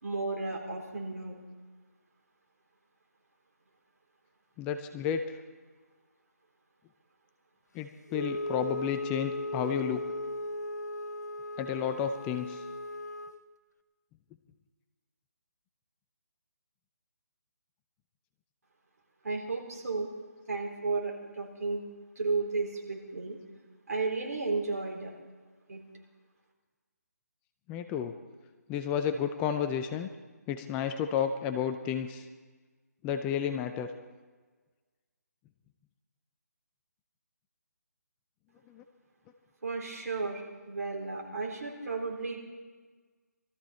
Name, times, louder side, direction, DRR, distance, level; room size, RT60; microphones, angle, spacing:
voice 1, 0.0-1.4 19.2-20.1 20.5-21.8 22.2-23.4 23.9-25.1 25.7-25.8 39.6-42.4, right 3 dB, 65° right, 0 dB, 3.9 m, -33 dB
voice 2, 4.6-5.4 7.7-10.0 11.6-12.6 27.7-28.1 28.7-30.1 30.5-32.3 33.0-33.9 38.7-38.8, left 8 dB, 15° left, 8 dB, 0.4 m, -32 dB
Wind instrument woodwind instrument, 8.1-13.4, left 1 dB, 80° left, 1.1 m, -36 dB
21.5 x 13.5 x 4.3 m, 1.4 s
figure-of-eight pair, 150°, 9 cm